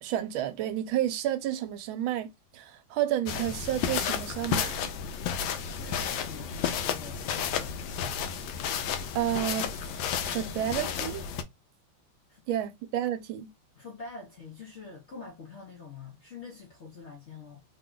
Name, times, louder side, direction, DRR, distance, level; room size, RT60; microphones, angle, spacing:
voice 1, 0.0-4.9 9.1-9.7 10.3-11.2 12.5-13.5, right 12 dB, 80° right, 1.4 m, -30 dB
sound 1, 3.3-11.4, left 8 dB, 75° left, 1.2 m, -32 dB
voice 2, 5.6-7.8 12.3-12.4 13.7-17.6, left 4 dB, 55° left, 0.7 m, -45 dB
3.5 x 2.2 x 3.8 m
omnidirectional pair, 2.2 m